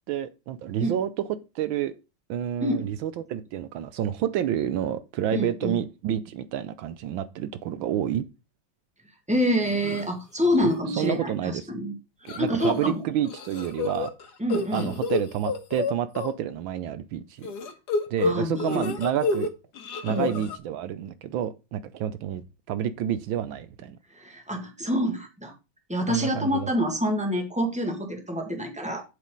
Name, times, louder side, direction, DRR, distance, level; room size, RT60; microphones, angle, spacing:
voice 1, 0.1-1.1 1.5-1.9 2.3-8.2 10.6-11.6 12.3-14.1 14.7-17.5 18.1-19.5 20.0-24.0 26.1-26.7, right 10 dB, 75° right, 1.4 m, -29 dB
voice 2, 5.3-5.8 9.3-11.9 12.4-13.0 14.4-14.9 18.2-18.9 20.1-20.4 24.1-25.5 25.9-29.0, equal, 5° right, 1.8 m, -27 dB
sound 1, 9.6-10.0 10.4-10.7 11.0-11.1 12.3-12.9 13.2-16.3 17.4-19.5 19.7-20.6, left 4 dB, 55° left, 1.8 m, -29 dB
8.4 x 7.6 x 3.9 m
omnidirectional pair, 2.2 m